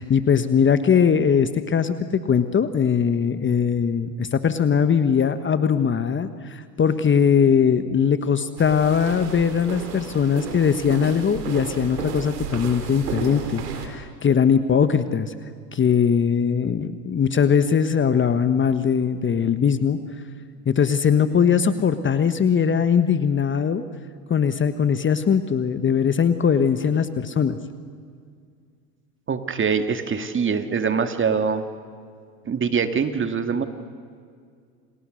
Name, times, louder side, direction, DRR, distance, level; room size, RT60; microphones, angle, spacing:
voice 1, 0.0-15.3 15.7-20.0 20.6-23.8 24.3-27.6, left 7 dB, 25° left, 11 dB, 1.3 m, -20 dB
sound 1, 8.6-13.9, right 5 dB, 90° right, 3.8 m, -33 dB
voice 2, 29.3-31.6 32.5-33.6, right 6 dB, 25° right, 9 dB, 2.1 m, -23 dB
30.0 x 28.0 x 6.5 m, 2.2 s
hypercardioid pair, 95°, 47 cm